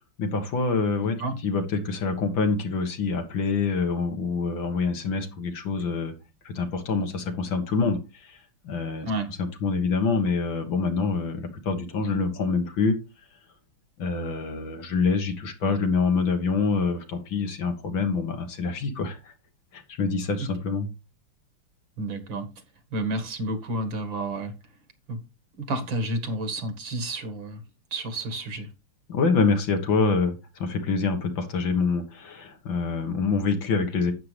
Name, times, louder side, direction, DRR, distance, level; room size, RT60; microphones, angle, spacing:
voice 1, 0.2-1.2 1.4-6.1 6.5-8.4 8.6-9.1 9.4-12.9 14.0-19.3 19.7-20.9 29.1-34.1, left 4 dB, 65° left, 6 dB, 2.2 m, -26 dB
voice 2, 1.0-1.3 9.0-9.3 22.0-22.5 22.9-24.5 25.1-25.2 25.6-27.6 27.9-28.7, right 1 dB, 60° right, 8 dB, 2.4 m, -30 dB
11.5 x 8.6 x 3.3 m, 0.27 s
omnidirectional pair, 2.4 m